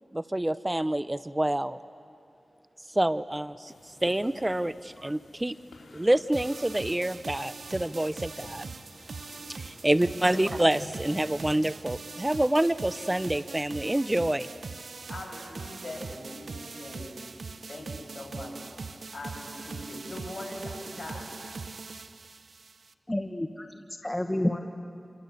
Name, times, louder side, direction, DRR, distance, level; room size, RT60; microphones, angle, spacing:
voice 1, 0.1-1.8 2.9-3.7 4.0-5.6 5.9-8.6 9.6-14.5, right 1 dB, 20° right, 15 dB, 0.6 m, -27 dB
sound 1, 3.6-11.8, left 2 dB, 85° left, 3.2 m, -50 dB
sound 2, 6.3-22.9, right 4 dB, 75° right, 0.8 m, -41 dB
voice 2, 9.8-10.4 15.1-17.2 17.7-18.6 19.1-21.3, left 1 dB, 65° left, 0 dB, 6.7 m, -41 dB
voice 3, 23.1-24.6, left 1 dB, 20° left, 6 dB, 1.3 m, -30 dB
27.5 x 24.5 x 8.2 m, 2.4 s
cardioid pair, 45°, 0 cm